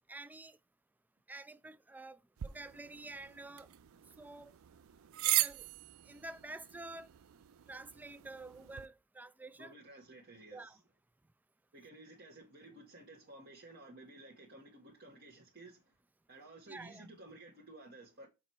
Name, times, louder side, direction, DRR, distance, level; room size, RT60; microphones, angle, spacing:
voice 1, 0.1-0.6 1.3-3.7 4.2-4.5 5.2-5.7 6.1-7.1 7.7-9.7 10.5-10.8 16.7-17.1, right 2 dB, 10° right, 0.3 m, -49 dB
sound 1, 2.4-8.9, right 15 dB, 80° right, 0.4 m, -39 dB
voice 2, 9.6-10.8 11.7-15.9 16.3-18.3, right 2 dB, 55° right, 1.3 m, -54 dB
6.4 x 4.3 x 4.4 m
head